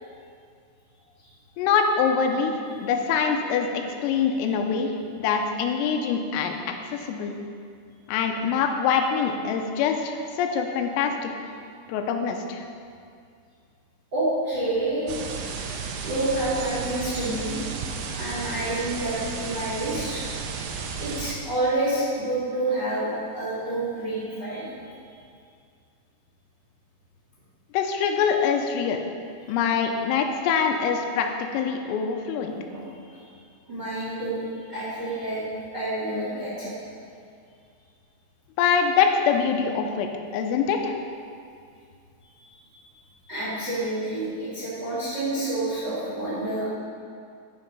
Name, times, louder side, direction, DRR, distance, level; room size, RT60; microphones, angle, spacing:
voice 1, 1.6-4.9 5.2-6.5 6.9-7.4 8.1-11.3 11.9-12.6 27.7-29.0 29.5-32.5 38.6-41.0, left 6 dB, 90° left, 4 dB, 3.3 m, -24 dB
voice 2, 14.1-15.1 16.0-17.6 18.2-20.2 21.0-24.7 29.4-29.5 32.5-32.8 33.1-33.2 33.7-35.4 35.7-36.7 42.4-42.7 43.3-46.7, right 1 dB, 45° right, -10 dB, 1.4 m, -28 dB
sound 1, 15.1-21.3, right 5 dB, 80° right, 2.8 m, -33 dB
12.5 x 5.3 x 5.3 m, 2.3 s
omnidirectional pair, 6.0 m